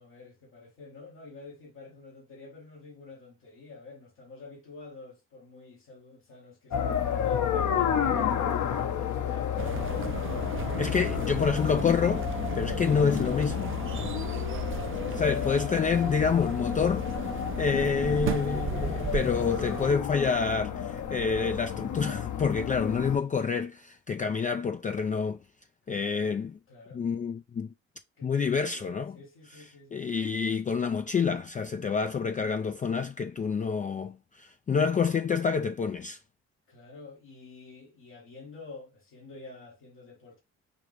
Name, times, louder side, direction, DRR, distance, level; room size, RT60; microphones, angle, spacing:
voice 1, 0.0-10.3 14.4-15.4 25.9-26.4 26.7-27.1 28.2-30.1 34.9-35.0 36.7-40.4, left 3 dB, 85° left, 1.7 m, -49 dB
sound 1, 6.7-23.2, left 8 dB, 60° left, 0.9 m, -31 dB
sound 2, 9.6-19.9, right 8 dB, 40° right, 0.5 m, -36 dB
voice 2, 10.8-12.3 12.5-13.8 15.1-17.1 17.6-25.4 25.9-26.5 26.9-27.7 28.2-29.1 29.9-36.2, left 6 dB, 25° left, 0.3 m, -28 dB
4.9 x 2.5 x 3.3 m
supercardioid pair, 55°, 33 cm